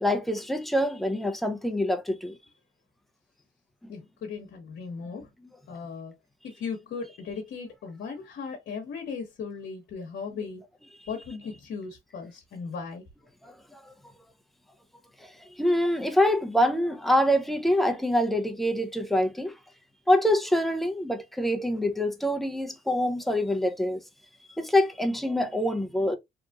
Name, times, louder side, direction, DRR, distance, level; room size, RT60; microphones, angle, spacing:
voice 1, 0.0-2.4 5.7-5.8 13.4-13.9 15.2-19.5 20.1-24.0 24.6-26.2, left 1 dB, ahead, 0.5 m, -25 dB
voice 2, 3.9-5.3 5.7-6.2 6.4-10.6 11.1-13.0, left 5 dB, 65° left, 1.0 m, -37 dB
3.0 x 2.4 x 2.2 m
cardioid pair, 90°, 20 cm